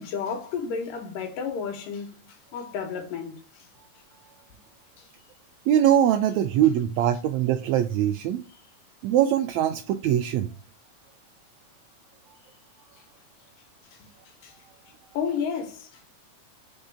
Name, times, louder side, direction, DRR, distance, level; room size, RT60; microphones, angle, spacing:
voice 1, 0.0-2.3 2.5-3.4 5.0-5.1 13.9-14.0 14.4-14.5 15.1-16.0, left 6 dB, 90° left, 3.1 m, -32 dB
voice 2, 5.7-8.4 9.0-10.5, right 10 dB, 85° right, 1.6 m, -22 dB
5.5 x 5.1 x 3.5 m
omnidirectional pair, 3.8 m